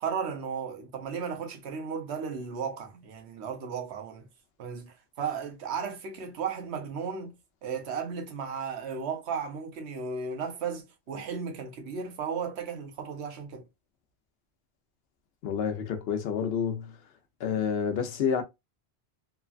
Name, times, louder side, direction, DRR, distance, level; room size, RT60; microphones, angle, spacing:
voice 1, 0.0-4.3 4.6-7.3 7.6-13.7, right 6 dB, 80° right, 1.0 m, -35 dB
voice 2, 15.4-17.0 17.4-18.4, left 7 dB, 70° left, 0.9 m, -29 dB
3.1 x 2.2 x 2.3 m
omnidirectional pair, 1.1 m